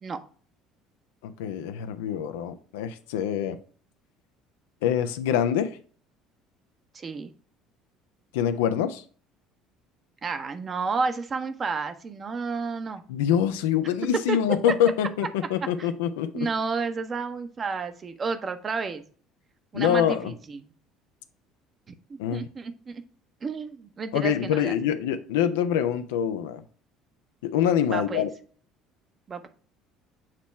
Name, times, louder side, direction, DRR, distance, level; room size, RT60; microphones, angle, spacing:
voice 1, 1.2-3.6 4.8-5.7 8.3-9.0 13.1-16.5 19.7-20.3 22.2-22.4 24.1-26.6 27.4-28.3, left 9 dB, 65° left, 0.5 m, -25 dB
voice 2, 6.9-7.3 10.2-13.0 14.3-14.7 15.6-15.9 16.3-19.0 19.7-20.6 22.1-23.0 23.4-24.8 27.8-28.3 29.3-29.5, right 4 dB, 30° right, 0.8 m, -31 dB
7.4 x 3.0 x 4.4 m
figure-of-eight pair, 60°, 0 cm